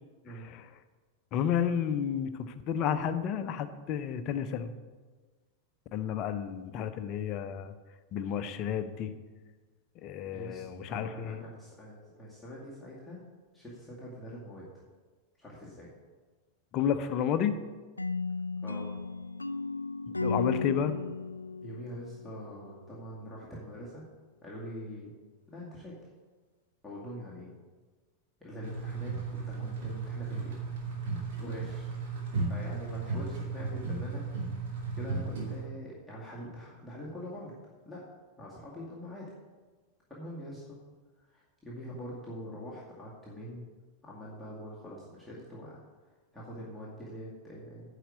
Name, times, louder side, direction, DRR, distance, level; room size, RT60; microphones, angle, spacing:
voice 1, 1.3-4.7 5.9-7.7 8.1-9.1 10.0-11.4 16.7-17.5 20.1-20.9, left 8 dB, 35° left, 9 dB, 0.7 m, -31 dB
voice 2, 10.3-13.2 13.5-14.7 15.4-15.9 18.6-19.0 21.6-24.1 24.4-25.1 25.5-26.0 26.8-27.5 28.4-30.6 31.4-31.9 32.5-34.3 34.9-37.5 37.8-38.0 38.4-39.3 40.1-40.8 41.2-43.6 44.0-45.8 46.3-48.0, equal, 5° left, -8 dB, 2.1 m, -44 dB
sound 1, 18.0-22.9, left 3 dB, 80° left, 0.3 m, -35 dB
sound 2, 28.6-35.6, right 3 dB, 55° right, 2.7 m, -35 dB
10.5 x 5.0 x 8.0 m, 1.4 s
figure-of-eight pair, 90°, 0 cm